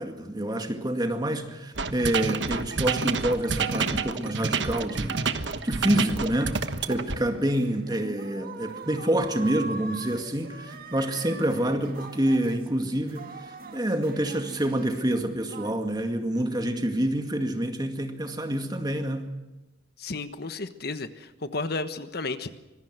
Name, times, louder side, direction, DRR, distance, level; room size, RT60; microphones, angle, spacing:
voice 1, 0.0-19.3, right 1 dB, 20° right, 2.2 m, -27 dB
sound 1, 1.7-7.2, right 4 dB, 65° right, 1.3 m, -28 dB
sound 2, 7.1-15.7, right 3 dB, 50° right, 1.9 m, -42 dB
voice 2, 20.0-22.5, left 3 dB, 55° left, 1.3 m, -33 dB
25.0 x 21.5 x 6.2 m
head